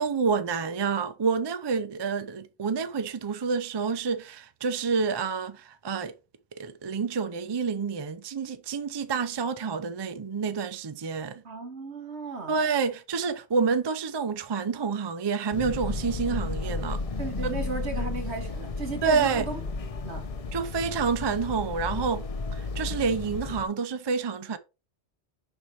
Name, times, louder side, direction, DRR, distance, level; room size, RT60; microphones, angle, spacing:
voice 1, 0.0-6.1 6.5-11.4 12.5-17.0 17.4-17.6 19.0-19.5 20.5-22.2 22.5-24.6, right 5 dB, 35° right, 0.4 m, -28 dB
voice 2, 11.4-12.6 16.8-16.9 17.2-19.6 20.0-20.2, right 3 dB, 70° right, 2.0 m, -35 dB
sound 1, 15.5-23.6, left 3 dB, 35° left, 0.7 m, -33 dB
5.6 x 4.4 x 4.6 m
omnidirectional pair, 1.2 m